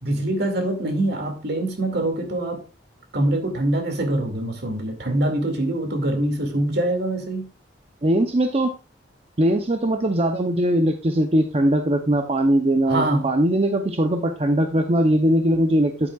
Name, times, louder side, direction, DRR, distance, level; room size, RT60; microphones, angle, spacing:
voice 1, 0.0-2.6 3.1-7.4 12.9-13.3, right 1 dB, 60° right, 4 dB, 2.3 m, -24 dB
voice 2, 8.0-8.7 9.4-16.1, right 1 dB, 35° right, 5 dB, 0.7 m, -20 dB
9.9 x 9.1 x 2.4 m, 0.32 s
head